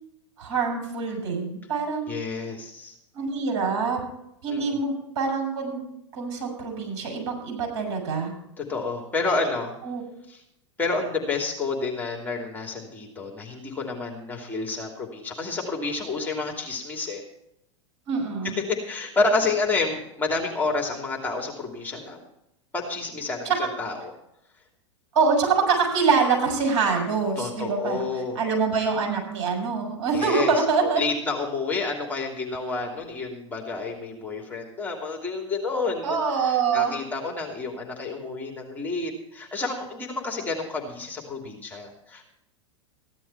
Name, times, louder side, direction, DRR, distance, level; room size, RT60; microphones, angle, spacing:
voice 1, 0.4-2.1 3.1-4.0 4.4-5.8 6.1-8.3 9.2-9.5 9.9-10.0 18.1-18.6 23.4-23.6 25.1-28.1 28.4-31.0 36.0-36.9, right 5 dB, 55° right, 0 dB, 7.0 m, -25 dB
voice 2, 2.1-2.9 4.5-4.8 8.6-9.7 10.3-10.4 10.8-17.2 18.6-22.2 22.7-24.1 27.4-28.4 30.1-30.6 31.0-42.2, left 3 dB, 10° left, 0 dB, 2.9 m, -29 dB
15.5 x 11.5 x 4.6 m, 0.80 s
figure-of-eight pair, 95°, 16 cm